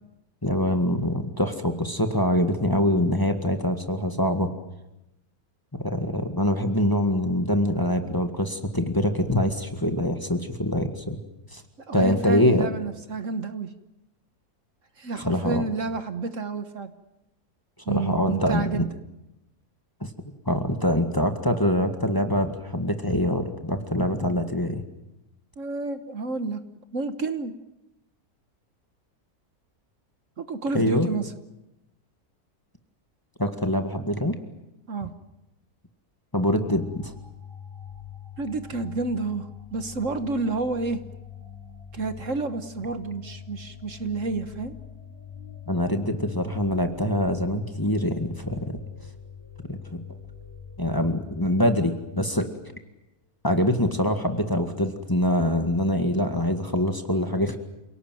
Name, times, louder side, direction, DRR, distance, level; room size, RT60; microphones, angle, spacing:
voice 1, 0.4-4.5 5.8-11.2 11.5-11.6 11.9-12.7 15.2-15.6 17.9-18.8 20.0-20.1 20.5-24.8 30.7-31.1 33.4-34.4 36.3-37.1 45.7-48.8 49.7-50.0 50.8-52.5 53.4-57.6, left 1 dB, 15° left, 6 dB, 1.8 m, -24 dB
voice 2, 11.9-13.7 15.0-16.9 17.8-18.9 25.6-26.6 26.9-27.5 30.4-31.3 34.9-35.1 38.4-41.0 41.9-44.7, right 3 dB, 55° right, 10 dB, 1.6 m, -30 dB
sound 1, 36.6-53.0, left 7 dB, 15° right, 3.8 m, -44 dB
28.0 x 18.0 x 9.3 m, 0.92 s
omnidirectional pair, 1.6 m